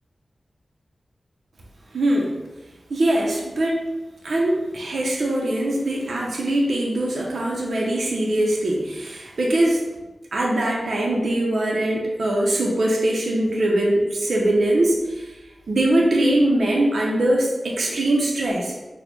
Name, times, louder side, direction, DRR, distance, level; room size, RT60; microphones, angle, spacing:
voice 1, 1.9-2.3 2.9-3.8 4.2-9.8 10.3-15.3 15.7-18.7, right 1 dB, 80° right, -2 dB, 0.5 m, -22 dB
4.1 x 2.1 x 3.1 m, 1.1 s
wide cardioid pair, 70°, 0 cm